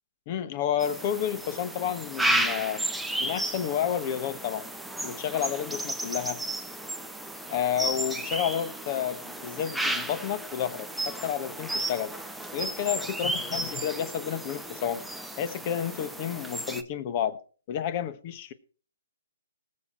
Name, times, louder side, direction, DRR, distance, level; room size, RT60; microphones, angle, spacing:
voice 1, 0.3-2.8 3.2-4.7 5.0-6.4 7.5-12.1 12.5-15.0 15.4-17.4 17.7-18.5, left 9 dB, 30° left, 13 dB, 1.4 m, -30 dB
sound 1, 0.8-16.8, right 1 dB, ahead, 0.9 m, -33 dB
19.0 x 7.6 x 4.8 m, 0.40 s
hypercardioid pair, 160°, 0 cm